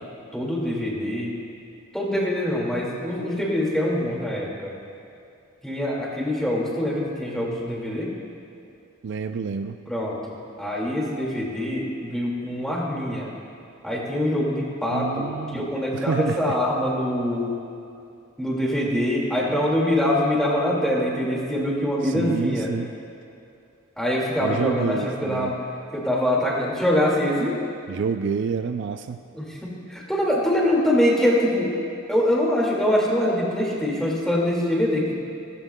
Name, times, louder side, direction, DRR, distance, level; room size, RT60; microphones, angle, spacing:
voice 1, 0.3-1.4 1.9-4.7 5.6-8.1 9.9-13.3 13.8-17.6 18.4-22.7 24.0-25.6 25.9-27.6 29.4-31.8 32.1-35.2, left 1 dB, 5° left, -4 dB, 2.0 m, -24 dB
voice 2, 9.0-9.8 14.9-15.6 15.9-16.6 22.0-22.9 24.4-25.6 27.9-29.2, right 5 dB, 60° right, 8 dB, 0.4 m, -28 dB
16.5 x 14.5 x 2.2 m, 2.6 s
head